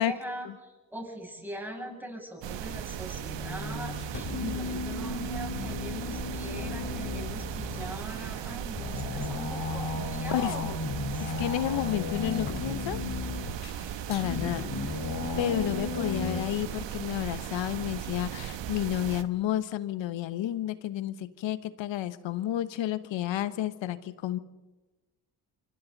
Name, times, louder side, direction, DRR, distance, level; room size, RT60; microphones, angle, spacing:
voice 1, 0.0-11.3 14.2-14.8, right 1 dB, 5° right, 0 dB, 7.9 m, -41 dB
sound 1, 2.4-19.2, right 10 dB, 65° right, 1.3 m, -37 dB
sound 2, 3.2-16.4, left 4 dB, 50° left, 4.3 m, -35 dB
voice 2, 11.2-13.0 14.1-14.7 15.4-24.4, left 12 dB, 70° left, 14 dB, 1.2 m, -31 dB
27.0 x 24.0 x 4.1 m, 1.2 s
supercardioid pair, 55°, 47 cm